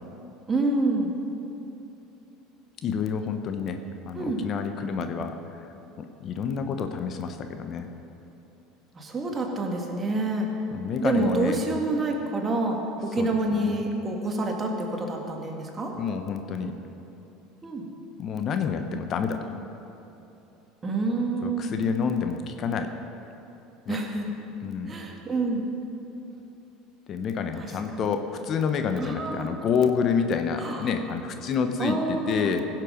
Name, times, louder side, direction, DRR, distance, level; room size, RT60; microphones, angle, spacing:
voice 1, 0.5-1.1 4.1-4.4 9.0-10.5 11.0-15.9 17.6-17.8 20.8-21.8 23.9-24.3 24.9-25.7 27.6-28.1 29.0-29.5 30.6-31.0 31.8-32.5, right 2 dB, 25° right, 1 dB, 2.0 m, -27 dB
voice 2, 2.8-3.8 4.0-5.7 6.2-7.9 10.7-11.6 13.2-13.8 15.9-16.7 18.2-19.4 21.4-22.9 23.9-24.0 24.6-24.9 27.1-32.6, left 6 dB, 45° left, 7 dB, 0.8 m, -28 dB
16.0 x 7.6 x 5.1 m, 2.9 s
hypercardioid pair, 75°, 0 cm